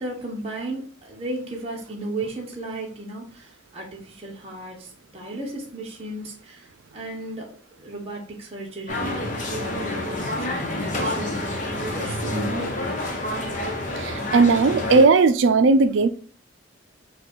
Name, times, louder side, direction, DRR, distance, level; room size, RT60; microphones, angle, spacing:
voice 1, 0.0-13.2, right 2 dB, 30° right, 0.9 m, -35 dB
sound 1, 8.9-15.0, left 1 dB, 40° left, 0.9 m, -28 dB
voice 2, 14.0-16.1, right 4 dB, 80° right, 0.4 m, -17 dB
4.7 x 2.4 x 4.5 m
head